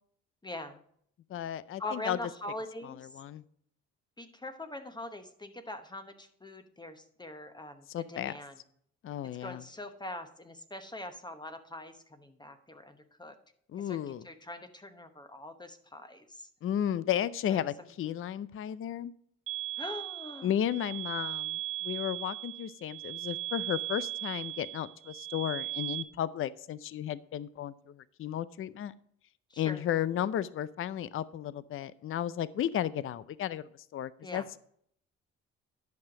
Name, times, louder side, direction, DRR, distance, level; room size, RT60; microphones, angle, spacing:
voice 1, 0.4-0.8 1.8-3.0 4.2-8.5 9.4-13.4 13.8-14.0 14.2-16.5 17.5-17.9 19.8-20.5 29.5-29.8 34.2-34.4, left 1 dB, 15° left, 8 dB, 0.9 m, -43 dB
voice 2, 1.3-2.2 2.8-3.4 7.9-8.3 9.0-9.6 13.7-14.3 16.6-19.1 20.4-28.9 29.6-34.6, left 10 dB, 45° left, 18 dB, 0.5 m, -34 dB
sound 1, 19.5-26.0, right 15 dB, 45° right, 0.5 m, -38 dB
10.5 x 5.7 x 4.9 m, 0.66 s
cardioid pair, 90°, 30 cm